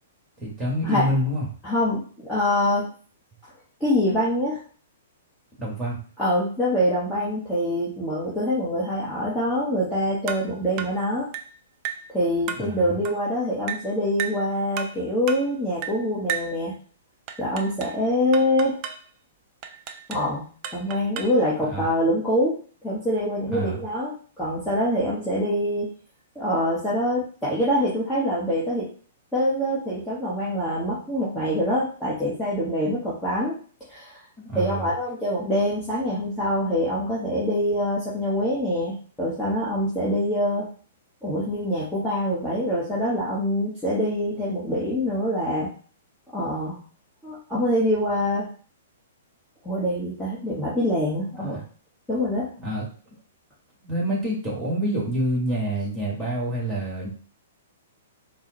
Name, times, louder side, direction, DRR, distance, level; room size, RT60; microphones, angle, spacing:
voice 1, 0.4-1.5 5.6-6.0 12.6-13.0 21.6-21.9 23.5-23.8 34.4-34.9 51.5-51.6 52.6-52.9 53.8-57.1, equal, 10° right, -4 dB, 1.7 m, -27 dB
voice 2, 1.6-2.9 3.8-4.6 6.2-11.3 12.1-16.8 17.4-18.8 20.1-25.9 26.3-28.9 29.3-33.6 33.9-34.2 34.5-40.7 41.2-45.7 46.3-46.8 47.2-48.5 49.6-51.6 52.1-52.5, equal, 5° left, -9 dB, 1.0 m, -25 dB
sound 1, 10.3-10.5 10.8-11.0 11.3-11.5 11.8-12.1 12.5-12.7 13.0-13.2 13.7-13.9 14.2-14.4 14.8-15.0 15.3-15.5 15.8-16.0 16.3-16.6 17.3-18.0 18.3-19.0 19.6-20.3 20.6-21.4, right 8 dB, 35° right, 0.4 m, -33 dB
4.0 x 2.1 x 2.9 m, 0.42 s
figure-of-eight pair, 110°, 0 cm